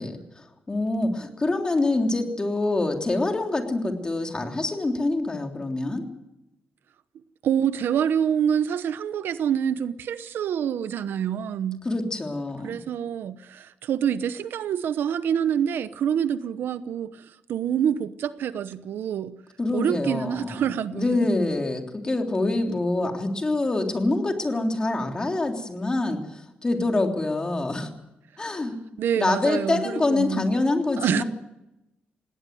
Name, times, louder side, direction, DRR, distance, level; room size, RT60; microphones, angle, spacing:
voice 1, 0.0-6.0 11.8-12.8 19.6-20.6 20.9-27.9 28.4-28.7 29.2-31.2, left 2 dB, 20° left, 3.3 m, -25 dB
voice 2, 7.4-11.8 12.6-19.4 19.7-21.1 29.0-30.5 31.0-31.2, right 8 dB, 75° right, 0.9 m, -26 dB
18.5 x 18.5 x 9.3 m
cardioid pair, 125°, 4 cm